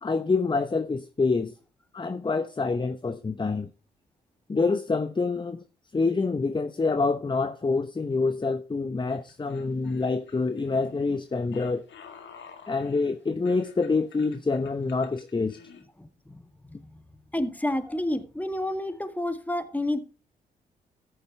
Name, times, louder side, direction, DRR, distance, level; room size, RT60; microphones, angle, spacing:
voice 1, 0.0-1.5 1.9-3.7 4.5-5.6 5.9-11.8 12.7-15.6, left 4 dB, 25° left, 0.9 m, -26 dB
sound 1, 9.1-15.8, left 6 dB, 65° left, 2.0 m, -50 dB
voice 2, 17.3-20.0, left 1 dB, 10° left, 1.9 m, -29 dB
14.0 x 6.8 x 4.2 m
hypercardioid pair, 40°, 21 cm